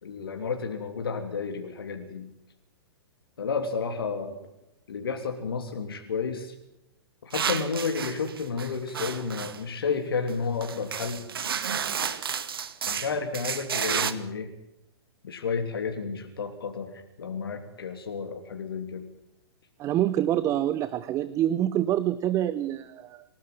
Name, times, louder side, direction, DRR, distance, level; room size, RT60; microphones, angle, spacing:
voice 1, 0.0-2.3 3.4-4.4 4.9-6.5 7.2-11.2 12.9-14.5 15.2-19.1, left 5 dB, 60° left, 5 dB, 3.1 m, -31 dB
sound 1, 7.3-9.6 10.3-10.4 10.6-14.1, right 7 dB, 60° right, 2.2 m, -31 dB
voice 2, 19.8-23.2, right 12 dB, 25° right, 16 dB, 1.0 m, -26 dB
27.5 x 18.0 x 7.9 m, 0.87 s
figure-of-eight pair, 110°, 14 cm